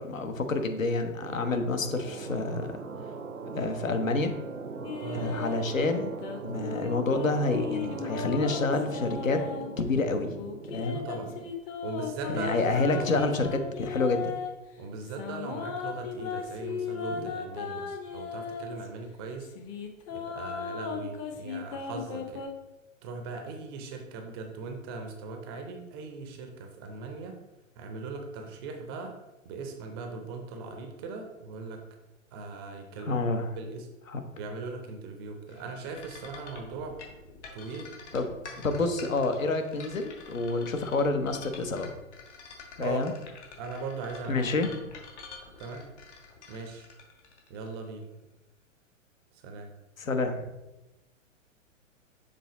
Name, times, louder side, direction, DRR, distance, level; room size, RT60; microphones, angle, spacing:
voice 1, 0.0-2.8 3.4-4.3 5.1-6.1 6.4-9.4 9.8-10.4 10.7-11.0 12.3-14.3 33.0-33.5 34.1-34.2 38.1-38.4 38.6-41.9 42.8-43.1 44.3-44.7 50.0-50.5, left 3 dB, 75° left, 7 dB, 1.0 m, -28 dB
sound 1, 1.2-11.5, right 4 dB, 80° right, 0.7 m, -40 dB
sound 2, 4.8-5.6 6.2-9.7 10.2-14.5 15.0-18.9 19.4-22.5, left 6 dB, 25° left, 0.6 m, -36 dB
voice 2, 10.9-11.3 11.8-13.1 14.8-19.5 20.1-22.4 23.0-27.3 27.8-29.1 29.4-31.8 32.3-33.2 33.6-33.9 34.4-37.0 37.5-37.9 42.8-43.1 43.6-44.5 45.6-45.9 46.5-46.9 47.5-48.0 49.3-49.7, right 4 dB, 20° right, 4 dB, 0.5 m, -39 dB
sound 3, 35.5-48.0, left 5 dB, 60° left, 1.7 m, -47 dB
6.8 x 3.7 x 4.1 m, 1.0 s
figure-of-eight pair, 110°, 40 cm